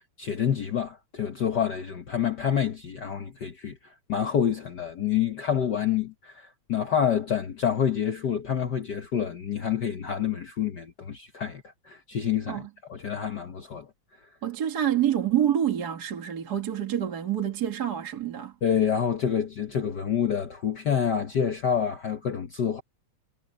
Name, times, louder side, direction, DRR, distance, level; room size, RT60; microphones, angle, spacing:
voice 1, 0.2-13.9 18.6-22.8, left 8 dB, 65° left, 1.0 m, -28 dB
voice 2, 14.4-18.5, right 10 dB, 40° right, 1.8 m, -27 dB
omnidirectional pair, 3.4 m